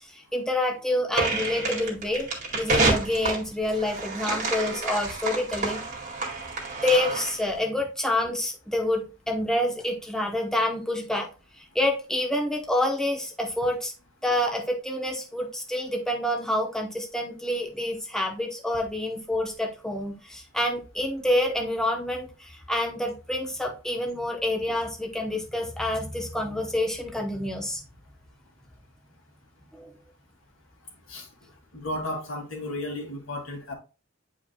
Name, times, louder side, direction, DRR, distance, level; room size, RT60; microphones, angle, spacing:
voice 1, 0.1-2.3 2.6-5.8 6.8-11.3 11.6-13.9 14.2-27.8 29.7-29.9, left 1 dB, 5° left, 0 dB, 0.9 m, -27 dB
sound 1, 1.1-7.5, right 3 dB, 35° right, 2.1 m, -28 dB
voice 2, 31.7-33.7, left 1 dB, 75° left, 0 dB, 2.3 m, -33 dB
9.2 x 4.9 x 2.3 m, 0.33 s
head